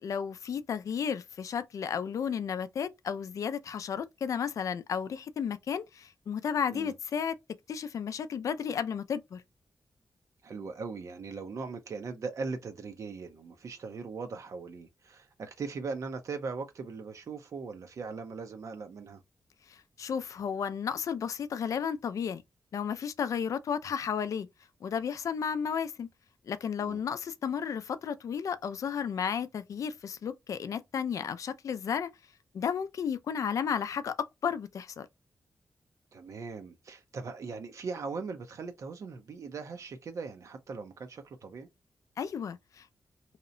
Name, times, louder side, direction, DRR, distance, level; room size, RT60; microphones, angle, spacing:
voice 1, 0.0-7.4 7.7-9.4 19.7-22.4 22.7-24.5 24.8-26.1 26.5-32.1 32.5-35.1 42.2-42.9, left 7 dB, 70° left, 0.3 m, -33 dB
voice 2, 10.4-19.2 26.8-27.0 36.1-41.7, right 4 dB, 65° right, 0.5 m, -39 dB
2.8 x 2.0 x 2.5 m
cardioid pair, 80°, 6 cm